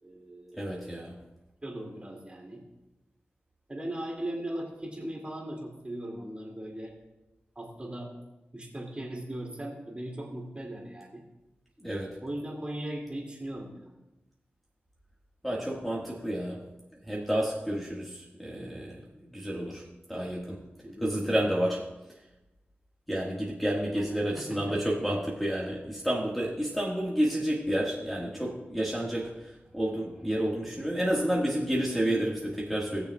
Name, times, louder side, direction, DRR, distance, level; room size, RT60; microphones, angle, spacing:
voice 1, 0.0-0.6 1.6-2.6 3.7-6.9 7.6-8.1 8.5-11.2 12.2-13.8 20.8-21.1 23.9-24.6, right 1 dB, 25° right, -1 dB, 2.4 m, -38 dB
voice 2, 0.5-1.1 11.8-12.2 15.4-16.6 16.9-19.0 19.3-19.8 20.1-20.6 21.0-21.9 23.1-33.1, right 1 dB, ahead, -5 dB, 1.6 m, -30 dB
18.5 x 6.8 x 2.3 m, 1.0 s
wide cardioid pair, 70°, 4 cm